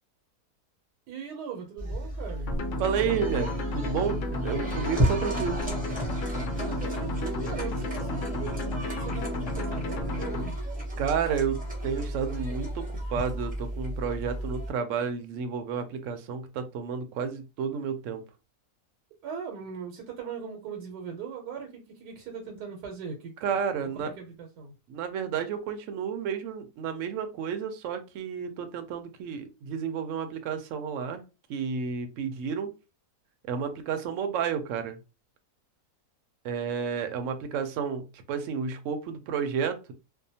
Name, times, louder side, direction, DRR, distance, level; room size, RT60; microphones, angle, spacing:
voice 1, 1.1-2.5 6.6-10.6 19.2-23.3 24.2-24.7, right 6 dB, 90° right, 1.2 m, -39 dB
sound 1, 1.8-14.7, equal, 10° right, 0.5 m, -32 dB
sound 2, 2.5-10.5, left 2 dB, 65° left, 0.8 m, -34 dB
voice 2, 2.8-5.6 11.0-18.2 23.4-24.1 24.9-31.2 31.5-32.7 33.5-35.0 36.4-39.9, right 7 dB, 70° right, 0.8 m, -31 dB
2.7 x 2.1 x 2.7 m
omnidirectional pair, 1.7 m